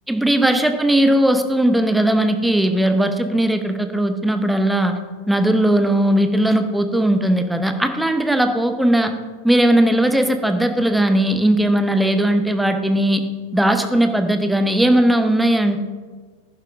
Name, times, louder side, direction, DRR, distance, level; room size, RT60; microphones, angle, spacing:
voice 1, 0.1-4.9 5.3-9.1 9.4-13.2 13.5-15.8, right 1 dB, 5° right, 7 dB, 0.9 m, -18 dB
11.5 x 9.8 x 3.7 m, 1.5 s
figure-of-eight pair, 90°, 0 cm